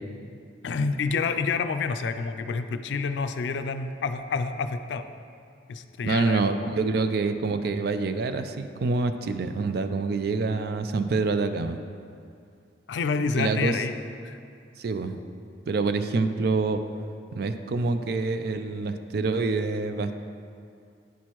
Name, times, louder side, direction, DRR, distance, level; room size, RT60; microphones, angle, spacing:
voice 1, 0.6-5.1 5.7-6.8 12.9-13.9 14.2-14.4, left 4 dB, 75° left, 9 dB, 0.4 m, -28 dB
voice 2, 6.0-11.8 13.4-13.8 14.8-15.2 15.7-16.8 17.3-20.2, right 3 dB, 60° right, 9 dB, 0.4 m, -26 dB
9.3 x 6.3 x 3.0 m, 2.4 s
head